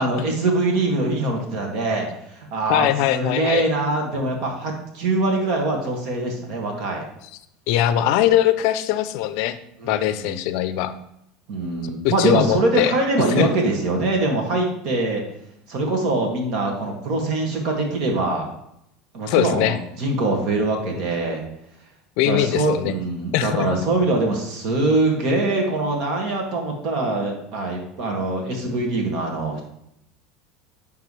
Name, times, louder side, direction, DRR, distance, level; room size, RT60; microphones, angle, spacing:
voice 1, 0.0-7.0 9.8-10.4 11.5-15.2 15.7-18.5 19.1-21.4 22.2-29.6, right 2 dB, 60° right, 1 dB, 1.9 m, -23 dB
voice 2, 2.7-3.6 7.7-9.6 9.8-11.0 12.0-12.9 13.4-13.5 19.3-19.8 22.2-22.9 23.3-23.7, left 12 dB, 70° left, 13 dB, 0.4 m, -21 dB
10.5 x 3.5 x 3.3 m, 0.78 s
supercardioid pair, 95°, 0 cm